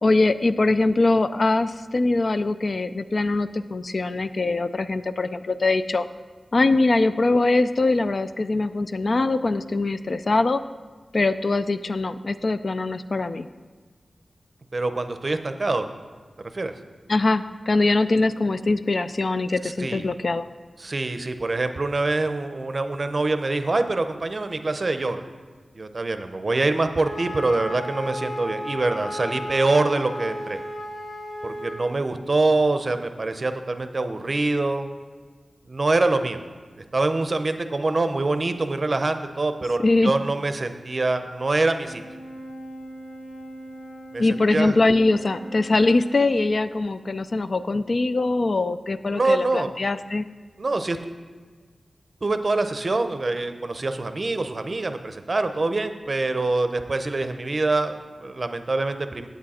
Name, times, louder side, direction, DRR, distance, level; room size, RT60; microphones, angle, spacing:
voice 1, 0.0-6.1 6.5-10.6 11.1-13.5 17.1-20.5 39.8-40.1 44.2-50.3, left 2 dB, 55° left, 12 dB, 0.3 m, -22 dB
voice 2, 14.7-15.9 16.5-16.7 19.6-20.0 20.8-25.2 25.7-30.6 31.4-34.9 35.7-36.4 36.9-42.0 44.1-44.7 49.2-49.7 50.6-51.0 52.2-59.3, right 2 dB, 45° right, 9 dB, 0.6 m, -25 dB
Wind instrument woodwind instrument, 27.0-31.8, equal, 75° left, 2.9 m, -34 dB
Brass instrument, 41.8-46.2, right 1 dB, 35° left, 0.8 m, -41 dB
8.8 x 8.1 x 4.2 m, 1.4 s
wide cardioid pair, 100°, 0 cm